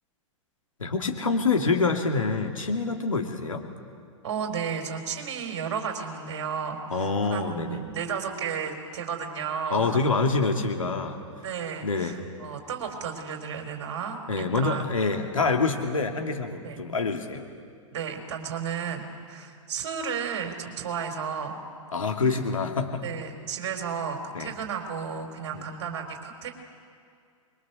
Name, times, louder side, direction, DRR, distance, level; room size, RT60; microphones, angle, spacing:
voice 1, 0.8-3.6 6.9-7.8 9.7-11.2 11.8-12.1 14.3-17.4 21.9-23.0 24.3-24.5 25.5-25.6, left 4 dB, 80° left, 3 dB, 2.4 m, -26 dB
voice 2, 4.2-10.1 11.4-14.9 16.6-16.8 17.9-21.6 23.0-26.5, right 6 dB, 55° right, 4 dB, 4.0 m, -33 dB
25.5 x 22.0 x 6.9 m, 2.3 s
figure-of-eight pair, 105°, 17 cm